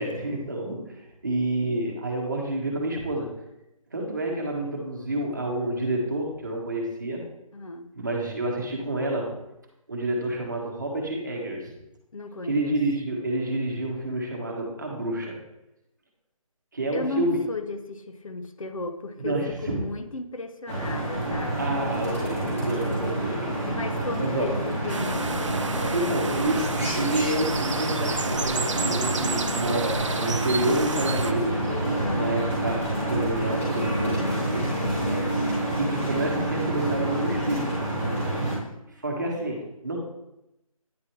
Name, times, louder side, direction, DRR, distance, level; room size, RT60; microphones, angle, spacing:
voice 1, 0.0-3.3 3.9-7.2 7.9-9.3 9.9-11.7 12.4-15.4 16.7-17.4 19.2-19.8 21.6-23.7 24.2-24.5 25.9-31.6 32.1-34.8 35.8-37.7 39.0-40.0, right 1 dB, 30° right, 0 dB, 1.2 m, -29 dB
voice 2, 7.5-7.9 12.1-12.8 16.9-21.8 23.7-25.5 32.0-32.4 37.9-38.7, left 3 dB, 65° left, 8 dB, 0.7 m, -35 dB
sound 1, 20.7-38.6, right 1 dB, 20° left, 2.2 m, -28 dB
sound 2, 24.9-31.3, right 4 dB, 55° right, 0.6 m, -31 dB
9.4 x 4.7 x 3.0 m, 0.88 s
figure-of-eight pair, 180°, 19 cm